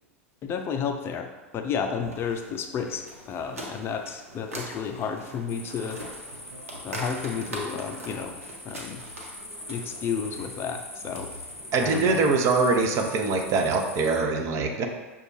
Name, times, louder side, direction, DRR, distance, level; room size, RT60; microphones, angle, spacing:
voice 1, 0.4-6.0 6.8-8.4 8.6-9.0 9.7-11.3 11.8-12.2, left 6 dB, 35° left, 5 dB, 0.4 m, -32 dB
sound 1, 2.0-12.9, right 1 dB, 80° right, 0.9 m, -42 dB
sound 2, 5.5-14.2, left 1 dB, 5° left, 1.1 m, -43 dB
voice 2, 11.7-14.9, right 4 dB, 40° right, 4 dB, 0.6 m, -23 dB
6.4 x 2.3 x 3.0 m, 1.2 s
hypercardioid pair, 90°, 7 cm